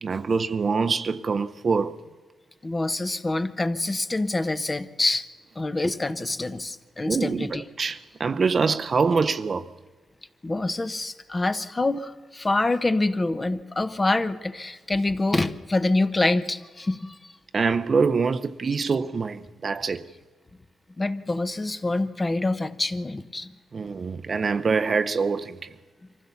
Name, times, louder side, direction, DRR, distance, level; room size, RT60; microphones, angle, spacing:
voice 1, 0.0-2.0 7.1-7.5 7.8-9.7 17.5-20.1 23.7-25.7, right 5 dB, 40° right, 0.7 m, -24 dB
voice 2, 2.6-5.3 5.5-7.6 10.4-17.3 21.0-23.5, left 2 dB, 20° left, 1.0 m, -26 dB
24.5 x 15.5 x 7.1 m
cardioid pair, 115°, 0 cm